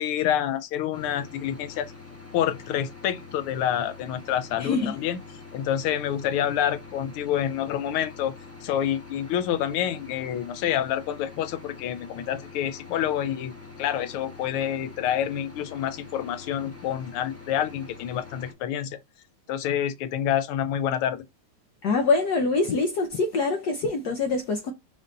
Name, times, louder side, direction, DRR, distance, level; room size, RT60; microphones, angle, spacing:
voice 1, 0.0-1.9 2.3-5.2 5.5-8.3 8.6-13.5 13.8-19.0 19.5-21.2, left 10 dB, 85° left, 1.6 m, -27 dB
sound 1, 0.9-18.5, left 4 dB, 10° left, 0.7 m, -45 dB
voice 2, 4.6-5.0 21.8-24.7, left 3 dB, 65° left, 1.0 m, -24 dB
5.3 x 2.6 x 3.8 m
omnidirectional pair, 2.3 m